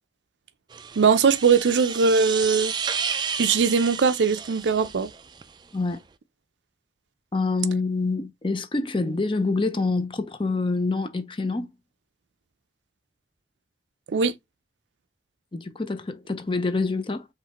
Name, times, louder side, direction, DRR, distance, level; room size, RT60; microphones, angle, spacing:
sound 1, 0.7-5.4, right 6 dB, 25° right, 0.3 m, -32 dB
voice 1, 1.0-2.7 3.4-5.1 14.1-14.3, right 5 dB, 85° right, 0.5 m, -20 dB
voice 2, 7.3-11.7 15.5-17.3, left 3 dB, 30° left, 0.6 m, -26 dB
5.0 x 3.3 x 2.9 m
head